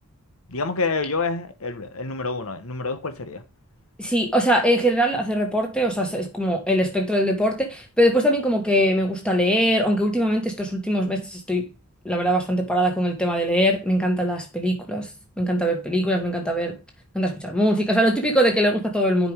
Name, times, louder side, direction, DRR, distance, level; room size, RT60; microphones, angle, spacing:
voice 1, 0.5-3.4, left 3 dB, 75° left, 1.1 m, -28 dB
voice 2, 4.0-11.7 12.0-15.1 15.4-16.7 17.1-19.3, equal, 5° left, 1.7 m, -22 dB
10.0 x 5.2 x 3.5 m
head